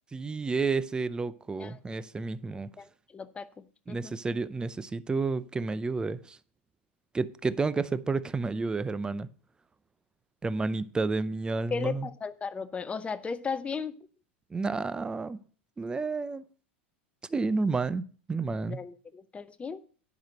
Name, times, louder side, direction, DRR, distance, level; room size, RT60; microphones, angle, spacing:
voice 1, 0.1-2.7 3.9-6.4 7.1-9.3 10.4-12.1 14.5-15.4 15.8-16.4 17.3-18.8, right 4 dB, 15° right, 0.6 m, -30 dB
voice 2, 1.6-1.9 2.5-4.1 11.7-14.0 18.7-19.8, left 5 dB, 20° left, 0.8 m, -36 dB
10.5 x 6.1 x 6.5 m
hypercardioid pair, 105°, 6 cm